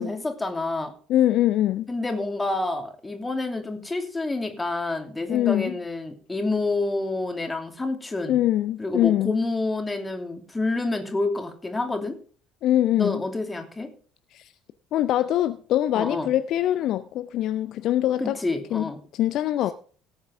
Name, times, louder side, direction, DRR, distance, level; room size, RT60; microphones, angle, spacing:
voice 1, 0.0-0.9 1.9-8.4 8.8-12.2 13.0-13.9 15.9-16.3 18.2-19.0, left 2 dB, 15° left, 5 dB, 2.9 m, -28 dB
voice 2, 1.1-1.9 5.3-5.8 8.3-9.4 12.6-13.2 14.3-14.5 14.9-18.4 18.7-18.8 19.1-19.7, left 12 dB, 50° left, 12 dB, 0.6 m, -23 dB
17.5 x 8.9 x 3.5 m, 0.42 s
figure-of-eight pair, 55°, 0 cm